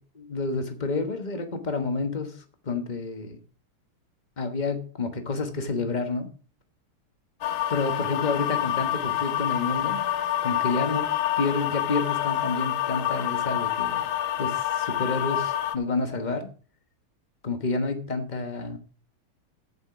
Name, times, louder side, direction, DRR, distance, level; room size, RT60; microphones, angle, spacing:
voice 1, 0.0-3.4 4.4-6.3 7.7-10.0 10.4-11.1 11.4-14.0 14.4-16.5 17.4-18.8, left 3 dB, 25° left, 1.0 m, -29 dB
sound 1, 7.4-15.8, left 12 dB, 75° left, 1.6 m, -27 dB
8.9 x 7.2 x 5.8 m
omnidirectional pair, 2.4 m